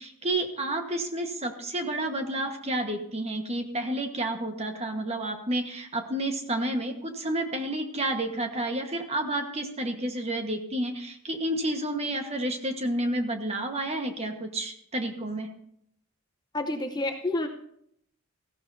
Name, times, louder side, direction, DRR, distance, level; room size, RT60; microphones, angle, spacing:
voice 1, 0.0-15.5, right 1 dB, 30° right, 4 dB, 1.3 m, -30 dB
voice 2, 16.5-17.5, left 2 dB, 20° left, 3 dB, 0.8 m, -29 dB
17.0 x 15.0 x 2.7 m, 0.71 s
head